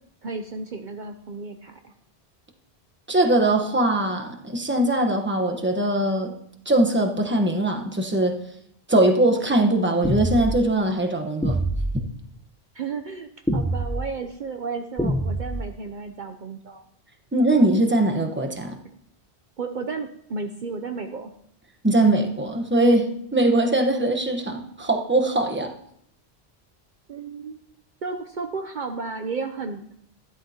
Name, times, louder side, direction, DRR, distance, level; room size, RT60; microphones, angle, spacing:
voice 1, 0.2-1.9 12.7-16.8 19.6-21.3 27.1-27.6 28.0-29.9, right 4 dB, 55° right, 5 dB, 0.8 m, -33 dB
voice 2, 3.1-6.3 6.6-8.3 8.9-11.6 17.3-18.8 21.8-25.7, right 1 dB, 10° right, 3 dB, 1.0 m, -21 dB
sound 1, 10.0-10.6 11.4-12.0 13.5-14.0 15.0-15.6, right 1 dB, 5° left, 0.6 m, -24 dB
13.0 x 12.0 x 2.9 m, 0.70 s
omnidirectional pair, 1.1 m